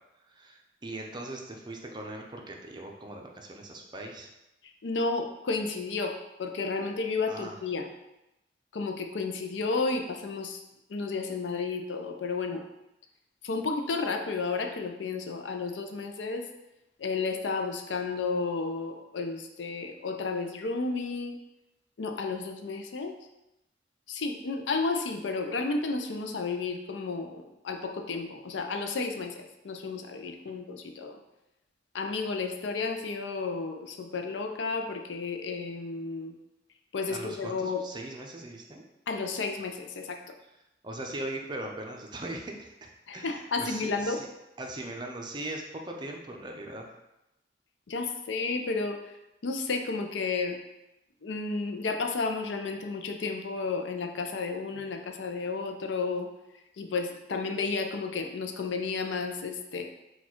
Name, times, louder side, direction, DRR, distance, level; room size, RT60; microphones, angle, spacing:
voice 1, 0.3-4.3 7.3-7.5 37.1-38.8 40.8-44.3 44.6-46.9, right 1 dB, 25° right, 2 dB, 0.5 m, -40 dB
voice 2, 4.6-7.9 8.7-10.6 10.9-12.6 13.4-16.5 17.0-21.4 22.0-23.2 24.1-31.2 31.9-36.4 36.9-37.8 39.1-40.2 43.1-44.2 47.9-49.1 49.4-50.6 51.2-56.3 56.8-59.8, left 4 dB, 90° left, 5 dB, 0.5 m, -32 dB
4.2 x 2.3 x 4.4 m, 0.92 s
head